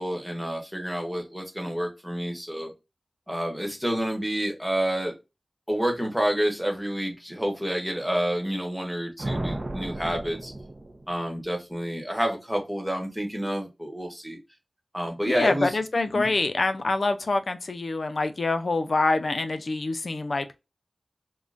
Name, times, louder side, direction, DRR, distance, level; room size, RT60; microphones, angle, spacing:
voice 1, 0.0-2.7 3.3-5.1 5.7-10.5 11.1-14.4 14.9-15.8 16.1-16.3, equal, 5° right, 1.1 m, -29 dB
sound 1, 9.2-11.5, right 1 dB, 50° right, 0.5 m, -34 dB
voice 2, 15.2-20.5, left 3 dB, 75° left, 0.4 m, -26 dB
3.7 x 2.1 x 2.5 m
wide cardioid pair, 50°, 0 cm